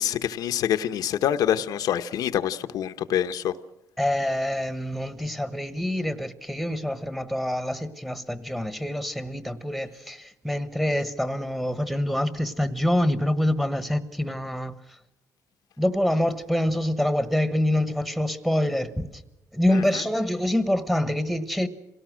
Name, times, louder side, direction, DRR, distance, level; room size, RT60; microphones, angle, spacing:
voice 1, 0.0-3.6 19.7-20.1, left 10 dB, 85° left, 0.9 m, -26 dB
voice 2, 4.0-14.7 15.8-19.1 19.5-21.7, left 1 dB, ahead, 1.2 m, -26 dB
26.5 x 17.5 x 6.2 m
cardioid pair, 130°, 6 cm